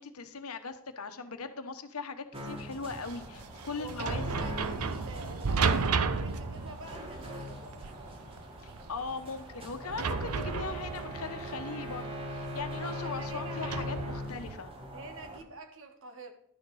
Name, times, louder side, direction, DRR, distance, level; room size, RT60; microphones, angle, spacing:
voice 1, 0.0-4.5 8.9-14.7, left 4 dB, 75° left, 8 dB, 1.1 m, -39 dB
sound 1, 2.3-15.4, equal, 25° right, 1.7 m, -41 dB
sound 2, 2.9-14.6, right 5 dB, 85° right, 0.7 m, -34 dB
voice 2, 3.8-8.2 12.7-14.0 14.9-16.3, right 2 dB, 60° right, 6 dB, 1.5 m, -47 dB
11.5 x 6.5 x 4.8 m, 0.73 s
head